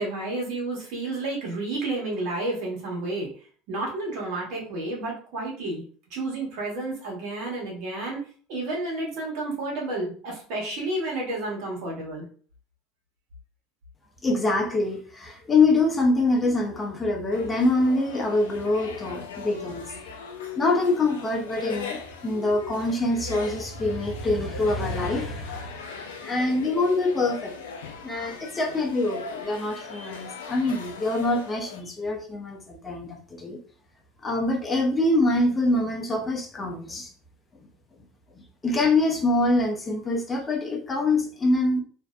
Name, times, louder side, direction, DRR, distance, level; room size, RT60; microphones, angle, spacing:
voice 1, 0.0-3.3 3.7-5.8 6.1-8.2 8.5-12.2, right 2 dB, 70° right, -2 dB, 1.1 m, -31 dB
voice 2, 14.2-19.9 20.6-25.7 26.0-27.8 28.0-33.6 34.2-37.1 38.6-41.8, left 2 dB, 25° left, 3 dB, 0.6 m, -25 dB
sound 1, 17.3-31.8, left 5 dB, 90° left, 0.3 m, -39 dB
2.5 x 2.0 x 2.4 m, 0.43 s
hypercardioid pair, 85°, 0 cm